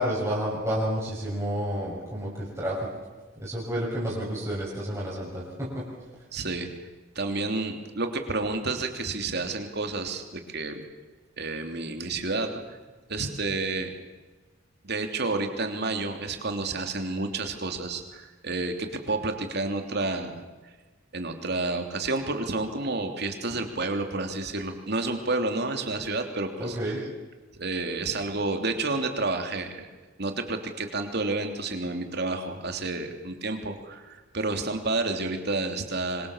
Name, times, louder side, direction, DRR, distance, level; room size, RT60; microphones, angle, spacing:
voice 1, 0.0-2.8 3.4-5.8 26.6-27.0, equal, 15° right, -7 dB, 6.5 m, -30 dB
voice 2, 6.3-6.7 7.1-10.9 11.4-12.6 13.1-13.9 14.8-20.4 21.1-26.9 27.6-29.9 30.2-36.3, right 3 dB, 55° right, 5 dB, 3.2 m, -30 dB
26.0 x 25.5 x 7.4 m, 1.3 s
head